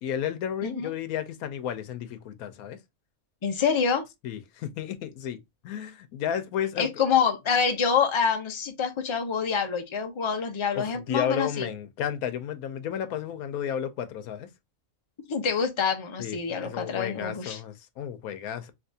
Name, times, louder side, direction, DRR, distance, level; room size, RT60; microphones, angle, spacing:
voice 1, 0.0-2.8 4.2-7.0 10.7-14.5 16.2-18.7, left 9 dB, 90° left, 1.1 m, -32 dB
voice 2, 3.4-4.0 6.8-11.7 15.3-17.6, left 6 dB, 45° left, 0.3 m, -26 dB
3.4 x 2.9 x 2.7 m
omnidirectional pair, 1.5 m